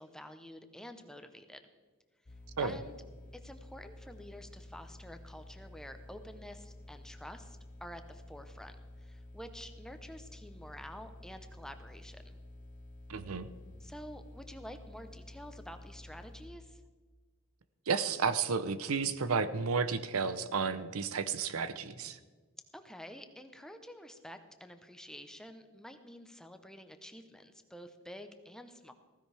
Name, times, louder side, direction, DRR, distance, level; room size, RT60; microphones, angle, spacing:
voice 1, 0.0-1.7 2.6-2.9 3.3-12.4 13.8-16.8 22.7-28.9, equal, 5° left, 7 dB, 0.7 m, -49 dB
sound 1, 2.3-16.5, left 1 dB, 40° left, 0.8 m, -51 dB
voice 2, 13.1-13.5 17.9-22.2, right 5 dB, 80° right, 12 dB, 0.7 m, -32 dB
15.5 x 15.0 x 3.4 m, 1.4 s
head